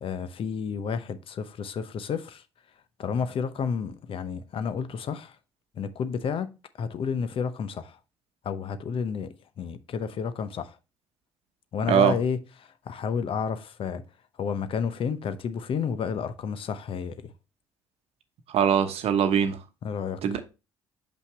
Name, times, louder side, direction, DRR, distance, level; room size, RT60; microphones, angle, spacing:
voice 1, 0.0-2.4 3.0-5.4 5.7-8.0 8.4-10.8 11.7-14.0 14.4-17.3 19.8-20.4, left 6 dB, 50° left, 0.7 m, -31 dB
voice 2, 18.5-19.6 20.2-20.4, right 8 dB, 60° right, 1.0 m, -22 dB
6.3 x 5.6 x 3.3 m
hypercardioid pair, 50°, 12 cm